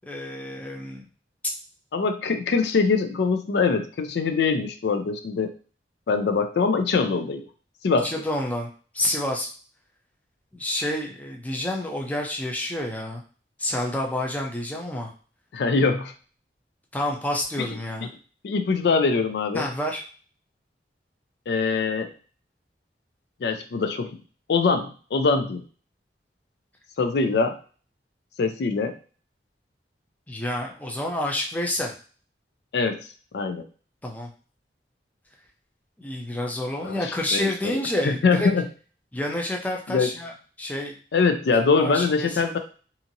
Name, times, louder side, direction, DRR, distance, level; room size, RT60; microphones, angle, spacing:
voice 1, 0.0-1.0 8.0-8.7 8.9-9.5 10.5-13.2 13.6-15.1 16.9-18.1 19.5-20.0 30.3-31.9 34.0-34.3 36.0-38.5 39.1-40.9 41.7-42.6, left 1 dB, 10° left, 0 dB, 0.4 m, -29 dB
voice 2, 1.9-5.5 6.1-7.4 7.8-8.1 15.5-16.1 17.6-17.7 18.4-19.7 21.5-22.1 23.4-24.2 24.5-25.6 27.0-27.6 28.4-29.0 32.7-33.0 33.3-33.6 36.8-37.8 38.0-38.6 39.9-40.1 41.1-42.6, left 4 dB, 70° left, 7 dB, 0.4 m, -23 dB
2.8 x 2.5 x 2.6 m, 0.39 s
head